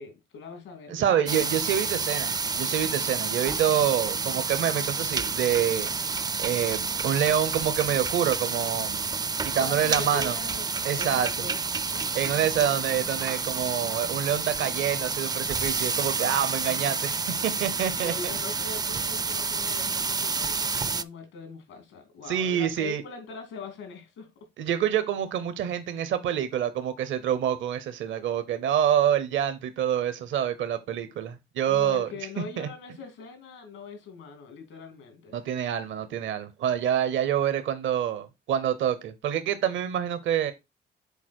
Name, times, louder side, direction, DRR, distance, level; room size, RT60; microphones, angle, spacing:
voice 1, 0.0-1.4 9.5-12.4 18.0-24.3 31.7-35.4, left 4 dB, 90° left, 2.9 m, -42 dB
voice 2, 0.9-5.9 6.4-9.0 9.4-10.3 10.8-11.3 12.1-17.2 17.4-18.1 22.3-23.0 24.6-32.1 32.6-32.7 35.3-40.5, right 9 dB, 75° right, 0.9 m, -27 dB
sound 1, 1.3-21.0, right 4 dB, 20° right, 0.4 m, -29 dB
7.1 x 4.2 x 4.4 m
cardioid pair, 90°, 20 cm